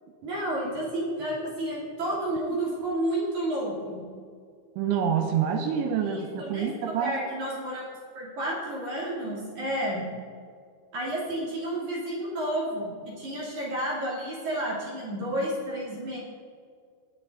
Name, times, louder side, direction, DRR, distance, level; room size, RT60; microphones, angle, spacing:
voice 1, 0.2-4.0 5.9-7.9 8.1-10.1 10.9-16.2, right 1 dB, 45° right, -5 dB, 3.6 m, -31 dB
voice 2, 4.8-7.2, right 7 dB, 85° right, 4 dB, 3.3 m, -27 dB
22.0 x 7.9 x 3.9 m, 2.1 s
omnidirectional pair, 5.4 m